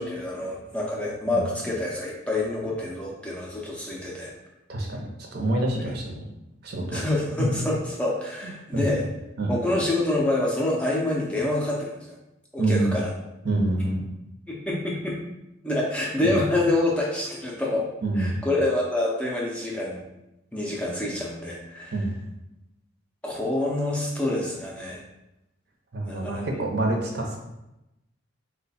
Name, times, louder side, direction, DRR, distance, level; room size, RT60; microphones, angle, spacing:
voice 1, 0.0-4.3 5.8-5.9 6.9-9.0 9.5-12.2 12.5-13.1 14.5-15.2 15.6-17.9 18.1-20.0 20.5-22.0 23.2-25.0 26.0-26.4, left 2 dB, 5° left, -4 dB, 0.4 m, -27 dB
voice 2, 4.7-5.0 5.3-6.2 6.6-7.0 7.4-7.6 8.4-8.9 9.4-9.6 12.6-13.0 13.4-14.1 16.2-16.4 18.0-18.4 21.9-22.1 25.9-27.4, right 2 dB, 50° right, 0 dB, 0.6 m, -26 dB
3.1 x 2.2 x 4.0 m, 0.92 s
head